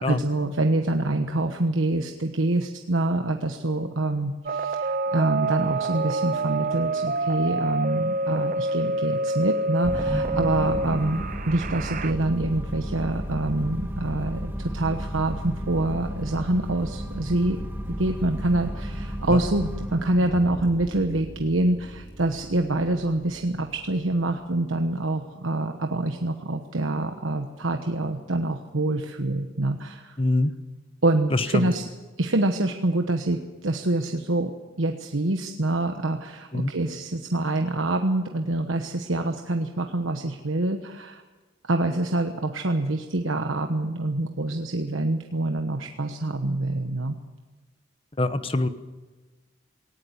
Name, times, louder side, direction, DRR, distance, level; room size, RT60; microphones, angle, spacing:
voice 1, 0.1-17.6 18.0-30.2 31.0-31.9 32.2-34.5 34.8-41.2 41.7-47.2, right 2 dB, 85° right, 5 dB, 1.3 m, -26 dB
sound 1, 4.5-12.1, right 2 dB, 45° right, 0.7 m, -27 dB
sound 2, 9.8-24.3, equal, 10° right, 2.0 m, -33 dB
voice 2, 30.2-30.5 31.3-31.7 36.5-36.7 48.2-48.7, left 2 dB, 30° left, 11 dB, 1.0 m, -24 dB
18.5 x 17.5 x 9.8 m, 1.2 s
head